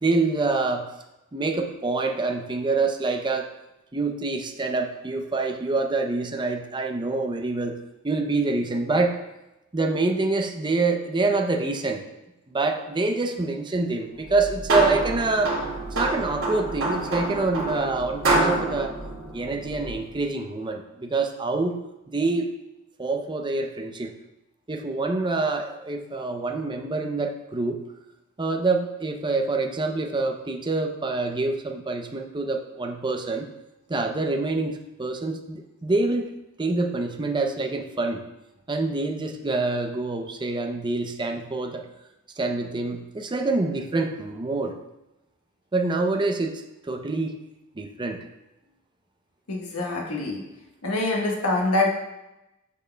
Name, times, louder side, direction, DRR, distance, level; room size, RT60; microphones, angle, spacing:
voice 1, 0.0-0.9 1.3-3.5 3.9-7.8 8.0-9.2 9.7-12.0 12.5-15.6 15.9-18.9 19.3-21.8 22.1-22.5 23.0-24.1 24.7-27.8 28.4-33.5 33.9-36.3 36.6-38.2 38.7-41.8 42.4-44.8 45.7-47.4 47.7-48.2, right 3 dB, 20° right, 4 dB, 0.6 m, -26 dB
sound 1, 14.2-20.1, right 2 dB, 85° right, 2.2 m, -27 dB
voice 2, 49.5-50.4 50.8-52.0, left 2 dB, 90° left, -1 dB, 1.4 m, -25 dB
8.2 x 6.4 x 2.2 m, 0.95 s
head